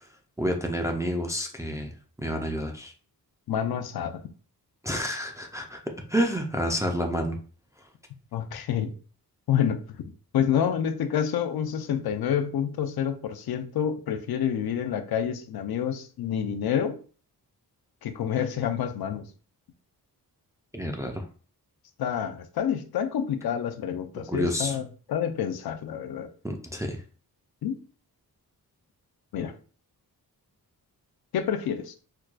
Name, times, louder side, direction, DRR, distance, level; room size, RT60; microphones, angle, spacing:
voice 1, 0.4-2.9 4.8-5.8 6.1-7.4 20.7-21.3 24.3-24.8 26.4-27.0, equal, 10° right, 0.3 m, -29 dB
voice 2, 3.5-4.2 8.3-8.9 9.5-17.0 18.0-19.3 22.0-26.3 27.6-27.8 29.3-29.5 31.3-32.0, left 8 dB, 75° left, 0.5 m, -28 dB
4.5 x 2.2 x 2.3 m
wide cardioid pair, 155°, 37 cm